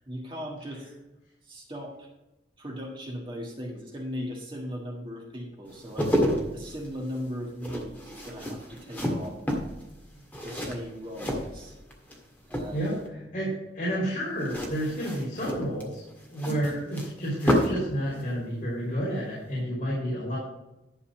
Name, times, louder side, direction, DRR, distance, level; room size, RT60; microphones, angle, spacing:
voice 1, 0.1-0.9 1.4-2.1 2.6-6.1 6.5-9.4 10.4-11.7 12.5-12.9, equal, 30° right, -2 dB, 1.6 m, -38 dB
sound 1, 5.7-12.2 12.4-13.1 14.4-17.9 18.2-18.3, equal, 10° left, 1.8 m, -30 dB
voice 2, 13.3-16.0 16.3-20.4, equal, 50° left, -8 dB, 3.5 m, -30 dB
11.5 x 4.1 x 7.3 m, 0.94 s
head